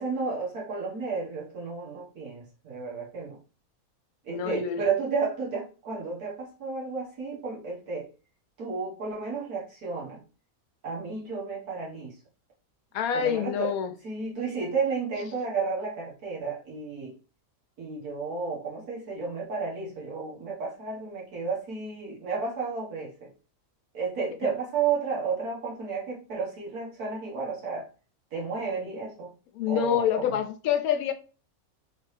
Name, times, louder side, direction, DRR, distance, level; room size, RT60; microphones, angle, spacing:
voice 1, 0.0-3.4 4.2-8.1 8.6-10.2 10.8-12.2 13.1-13.7 14.0-17.2 17.8-23.3 23.9-27.9 28.3-29.3 29.7-30.4, right 5 dB, 90° right, 1.9 m, -32 dB
voice 2, 4.3-4.8 12.9-13.9 28.8-28.9 29.5-31.1, left 8 dB, 75° left, 1.1 m, -26 dB
3.8 x 3.3 x 3.2 m
omnidirectional pair, 1.5 m